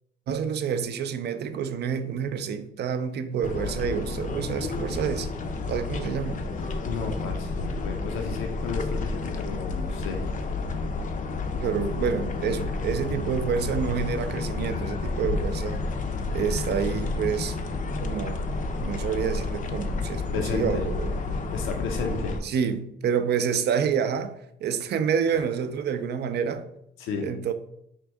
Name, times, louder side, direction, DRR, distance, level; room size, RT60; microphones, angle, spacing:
voice 1, 0.3-5.3 5.7-6.4 11.6-15.8 16.3-17.6 18.0-18.4 18.8-21.4 22.4-26.7 27.2-27.5, right 7 dB, 60° right, 0.4 m, -28 dB
sound 1, 3.4-22.4, left 3 dB, 40° left, 0.5 m, -30 dB
voice 2, 6.8-10.2 12.3-12.6 20.3-20.9 21.3-22.4 25.3-25.4 27.0-27.3, left 4 dB, 90° left, 0.6 m, -33 dB
4.5 x 2.6 x 3.3 m
cardioid pair, 90°, 20 cm